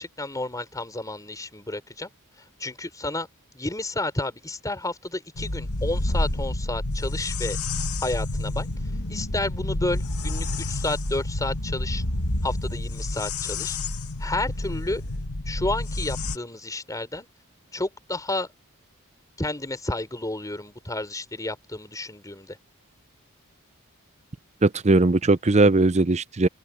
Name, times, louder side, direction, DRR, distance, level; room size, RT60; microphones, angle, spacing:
voice 1, 0.0-2.1 2.6-3.3 3.5-7.6 8.0-8.7 9.1-12.0 12.4-13.8 14.2-15.0 15.5-17.3 17.7-18.5 19.4-22.6, left 2 dB, 15° left, 3.8 m, -31 dB
sound 1, 5.4-16.4, left 2 dB, 80° left, 2.3 m, -29 dB
voice 2, 24.6-26.5, right 2 dB, 30° right, 0.6 m, -19 dB
open air
head